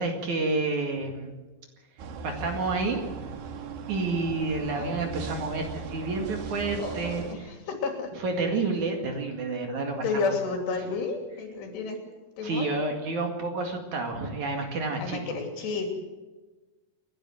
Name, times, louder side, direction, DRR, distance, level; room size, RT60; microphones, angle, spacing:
voice 1, 0.0-1.3 2.2-3.0 3.9-7.2 8.2-10.3 12.4-15.4, right 3 dB, 50° right, 3 dB, 3.2 m, -29 dB
sound 1, 2.0-7.3, right 5 dB, 75° right, 3.5 m, -38 dB
voice 2, 4.7-5.0 6.8-8.2 10.0-12.0 12.4-12.7 15.0-15.9, left 4 dB, 85° left, 3 dB, 5.3 m, -31 dB
28.5 x 11.5 x 7.8 m, 1.2 s
omnidirectional pair, 4.7 m